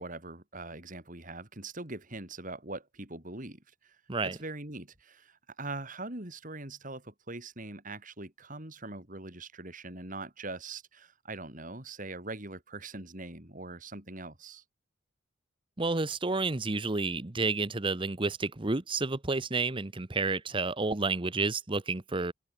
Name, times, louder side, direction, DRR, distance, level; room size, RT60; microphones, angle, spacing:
voice 1, 0.0-4.0 4.2-14.6, right 2 dB, 40° right, 4.1 m, -42 dB
voice 2, 15.8-22.3, right 3 dB, 25° right, 0.9 m, -30 dB
head